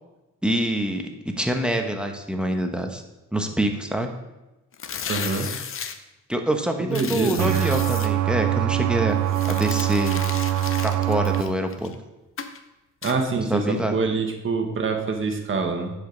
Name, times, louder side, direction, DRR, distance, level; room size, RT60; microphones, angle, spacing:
voice 1, 0.4-3.0 3.3-4.1 6.3-9.2 9.4-10.2 10.8-11.9 13.5-14.0, right 1 dB, 5° right, 4 dB, 1.0 m, -25 dB
sound 1, 4.7-6.0 6.9-8.1 9.3-11.9 12.4-12.6 13.0-13.2, left 7 dB, 45° left, 0.7 m, -34 dB
voice 2, 5.1-5.5 6.9-7.6 13.0-13.6 13.9-15.9, right 4 dB, 40° right, 4 dB, 1.4 m, -25 dB
sound 2, 7.4-11.4, right 13 dB, 70° right, 0.7 m, -23 dB
10.0 x 5.2 x 3.9 m, 1.0 s
cardioid pair, 90°, 30 cm